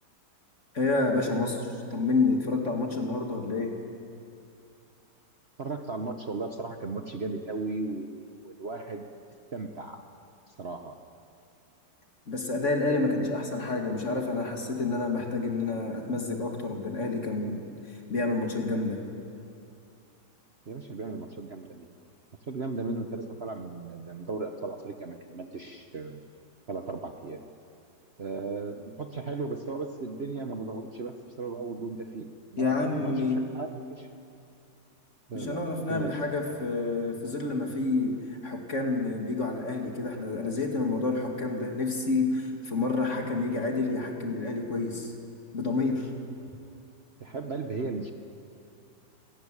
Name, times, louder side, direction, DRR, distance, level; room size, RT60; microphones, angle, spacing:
voice 1, 0.7-3.8 12.3-19.0 32.6-33.5 35.3-45.1 45.5-46.1, left 3 dB, 40° left, 2 dB, 2.5 m, -29 dB
voice 2, 5.6-8.2 8.4-9.1 9.5-10.0 10.5-11.0 20.7-21.9 22.5-26.2 26.7-27.4 28.2-33.3 33.5-34.1 35.3-36.4 47.2-48.1, right 3 dB, 40° right, 4 dB, 1.1 m, -36 dB
27.0 x 14.0 x 9.8 m, 2.5 s
omnidirectional pair, 1.9 m